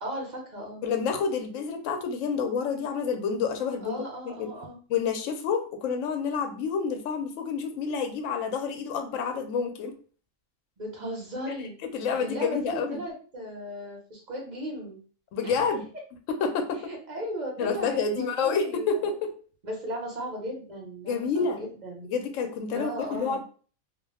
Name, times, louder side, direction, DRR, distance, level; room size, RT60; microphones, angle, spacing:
voice 1, 0.0-0.8 3.8-4.8 10.8-11.7 12.1-15.0 15.4-15.6 16.9-19.1 19.6-22.1 22.7-23.4, equal, 40° right, -1 dB, 0.8 m, -36 dB
voice 2, 0.8-4.5 4.9-9.9 11.9-13.0 15.3-15.9 16.3-16.9 17.6-19.3 21.0-21.6 22.1-23.4, left 5 dB, 75° left, 6 dB, 0.9 m, -29 dB
2.4 x 2.1 x 3.3 m, 0.40 s
omnidirectional pair, 1.4 m